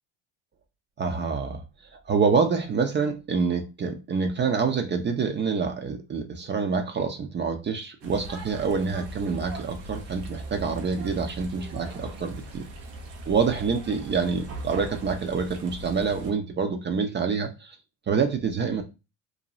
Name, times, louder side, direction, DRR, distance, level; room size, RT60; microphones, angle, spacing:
voice 1, 1.0-1.6 1.9-12.7 13.3-17.8 18.1-18.8, right 5 dB, 30° right, 0.5 m, -26 dB
sound 1, 8.0-16.3, right 2 dB, 90° right, 0.8 m, -39 dB
2.6 x 2.3 x 2.9 m
supercardioid pair, 85°, 39 cm